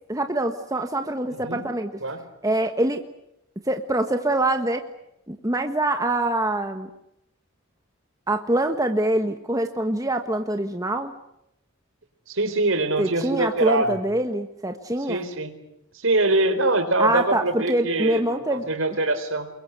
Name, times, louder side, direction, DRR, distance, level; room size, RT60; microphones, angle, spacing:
voice 1, 0.1-1.9 2.4-3.0 3.7-4.8 5.3-6.9 8.3-11.1 13.0-15.2 17.0-18.7, right 1 dB, 15° right, 6 dB, 1.4 m, -24 dB
voice 2, 1.3-1.6 2.0-2.2 12.3-14.0 15.1-15.5 15.9-19.5, right 2 dB, 70° right, 8 dB, 4.2 m, -24 dB
29.0 x 22.5 x 8.1 m, 0.80 s
head